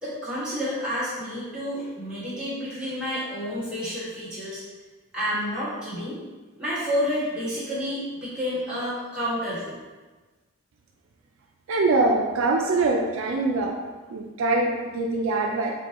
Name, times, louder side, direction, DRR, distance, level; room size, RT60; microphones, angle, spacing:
voice 1, 0.0-4.6 5.1-6.2 6.6-9.8, equal, 5° right, -11 dB, 1.4 m, -29 dB
voice 2, 11.7-13.7 14.1-15.7, right 2 dB, 60° right, 1 dB, 0.4 m, -23 dB
4.5 x 2.2 x 4.1 m, 1.3 s
head